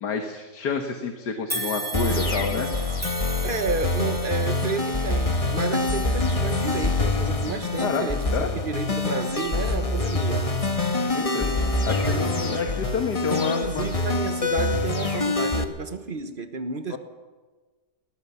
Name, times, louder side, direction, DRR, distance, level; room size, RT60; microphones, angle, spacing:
voice 1, 0.0-2.7 7.8-8.5 11.1-11.5 11.8-13.9 16.9-17.0, left 5 dB, 75° left, 2.1 m, -28 dB
sound 1, 1.5-10.8 11.3-11.5 12.4-12.5, right 2 dB, 5° right, 3.8 m, -37 dB
sound 2, 1.9-15.6, left 2 dB, 20° left, 1.4 m, -25 dB
voice 2, 3.4-10.5 13.3-17.0, right 4 dB, 35° right, 1.2 m, -31 dB
23.5 x 18.5 x 7.1 m
omnidirectional pair, 1.8 m